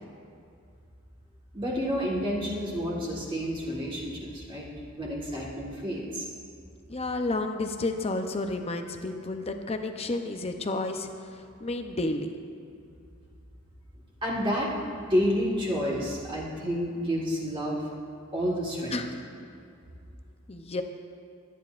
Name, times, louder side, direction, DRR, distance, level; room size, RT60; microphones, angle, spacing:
voice 1, 1.5-6.3 14.2-14.7 15.1-17.8 18.3-19.0, equal, 25° right, -4 dB, 1.6 m, -29 dB
voice 2, 6.9-12.3 18.9-19.1 20.5-20.8, left 2 dB, 30° left, 6 dB, 0.7 m, -31 dB
25.5 x 9.5 x 2.5 m, 2.4 s
head